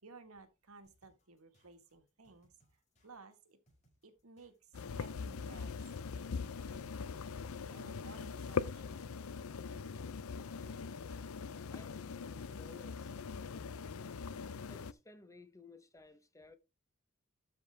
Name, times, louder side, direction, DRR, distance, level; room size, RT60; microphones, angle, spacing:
voice 1, 0.0-3.6 4.0-5.9 7.7-9.4, right 3 dB, 85° right, 1.7 m, -57 dB
sound 1, 0.8-12.2, equal, 35° left, 5.7 m, -73 dB
sound 2, 4.7-14.9, left 5 dB, 75° left, 0.5 m, -41 dB
voice 2, 11.7-13.2 14.7-16.5, left 3 dB, 15° left, 0.9 m, -58 dB
12.5 x 5.1 x 3.4 m
head